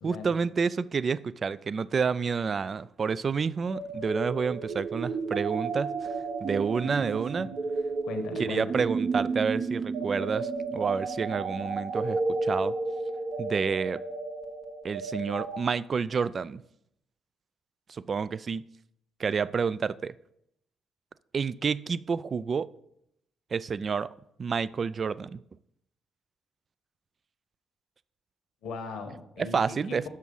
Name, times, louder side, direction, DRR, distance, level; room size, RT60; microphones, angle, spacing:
voice 1, 0.0-6.1 6.4-7.5 8.4-12.7 13.4-14.0 14.8-16.6 17.9-18.6 19.2-20.1 21.3-22.7 23.5-24.1 24.4-25.4 29.4-30.1, right 5 dB, 45° right, 0.3 m, -29 dB
sound 1, 3.7-15.6, right 4 dB, 65° right, 1.1 m, -32 dB
voice 2, 8.0-8.8 28.6-30.1, left 4 dB, 75° left, 1.1 m, -39 dB
6.4 x 6.0 x 5.4 m
supercardioid pair, 55°, 0 cm